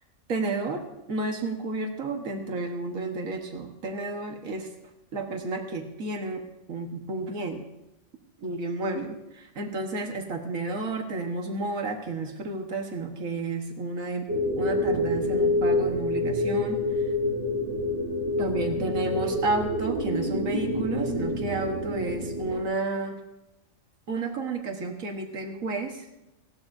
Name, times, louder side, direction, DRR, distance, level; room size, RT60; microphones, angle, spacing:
voice 1, 0.3-0.8 1.1-4.7 5.1-6.4 6.7-7.6 8.4-14.3 14.6-16.8 18.4-23.2 24.1-26.1, right 2 dB, 85° right, 4 dB, 1.8 m, -31 dB
sound 1, 14.3-22.6, left 1 dB, 65° right, 2.1 m, -27 dB
19.0 x 16.0 x 2.7 m, 0.92 s
omnidirectional pair, 1.4 m